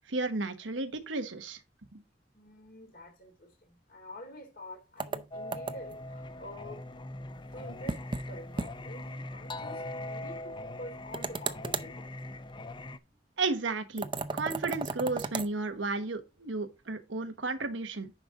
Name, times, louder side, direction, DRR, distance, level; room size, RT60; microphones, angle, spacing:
voice 1, 0.1-1.6 1.9-2.0 13.4-14.1 14.3-18.1, right 3 dB, 85° right, 1.2 m, -33 dB
voice 2, 2.3-6.8 7.5-12.1, left 1 dB, 55° left, 3.2 m, -48 dB
sound 1, 5.0-6.0 7.9-8.3 8.6-8.7 9.0-9.1 11.1-11.9 14.0-15.5, right 4 dB, 25° right, 0.6 m, -35 dB
Singing, 5.3-13.0, left 1 dB, 25° left, 0.5 m, -41 dB
10.0 x 5.2 x 3.7 m
head